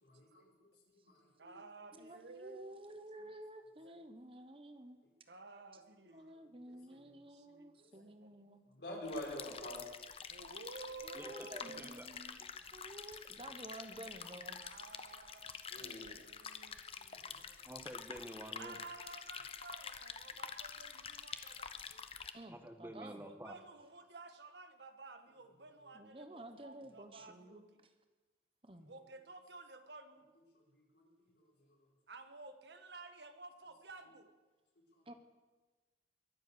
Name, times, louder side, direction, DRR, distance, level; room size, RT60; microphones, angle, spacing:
voice 1, 0.0-1.6 6.1-6.3 7.8-7.9 8.8-9.8 15.7-16.3 17.1-17.2 30.5-31.1 31.4-31.5 34.9-35.1, left 1 dB, 80° left, 4.7 m, -48 dB
voice 2, 1.2-2.8 3.2-3.3 3.8-4.1 5.3-8.3 10.3-12.0 14.6-17.7 18.6-21.8 23.2-27.6 28.9-30.3 32.1-34.3, right 3 dB, 80° right, 1.5 m, -54 dB
voice 3, 2.0-5.0 6.1-8.7 11.0-14.6 22.3-23.2 25.9-27.7 28.6-28.9 35.1-35.2, right 1 dB, 30° right, 1.2 m, -52 dB
sound 1, 9.1-22.3, left 6 dB, 35° left, 0.8 m, -48 dB
voice 4, 11.1-12.1 12.4-12.5 17.6-18.8 22.5-23.6, equal, 10° right, 1.3 m, -49 dB
22.5 x 7.9 x 8.1 m
head